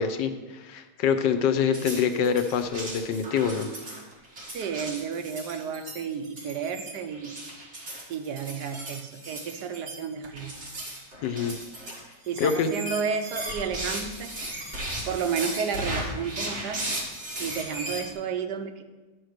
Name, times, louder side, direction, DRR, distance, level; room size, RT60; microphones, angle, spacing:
voice 1, 0.0-3.7 11.2-11.6 12.4-12.7, left 7 dB, 85° left, 8 dB, 1.4 m, -25 dB
sound 1, 1.7-18.1, right 1 dB, 40° right, 2.1 m, -36 dB
voice 2, 4.5-7.4 8.1-10.5 12.3-14.3 15.1-16.9 17.4-18.8, right 6 dB, 75° right, 7 dB, 1.2 m, -32 dB
10.5 x 4.7 x 6.5 m, 1.2 s
omnidirectional pair, 1.9 m